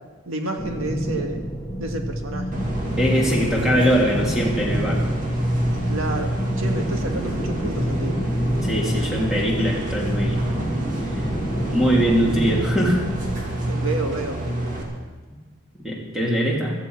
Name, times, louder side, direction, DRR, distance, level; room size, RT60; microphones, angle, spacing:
voice 1, 0.3-1.4 1.8-2.6 5.9-8.2 13.7-14.5, right 2 dB, 75° right, 4 dB, 1.8 m, -30 dB
sound 1, 0.6-13.4, equal, 20° left, 1.3 m, -29 dB
sound 2, 2.5-14.8, right 1 dB, 40° right, 2.5 m, -27 dB
voice 2, 3.0-5.0 8.6-10.4 11.7-13.0 15.8-16.7, equal, ahead, -4 dB, 2.9 m, -21 dB
16.5 x 14.0 x 4.8 m, 1.3 s
head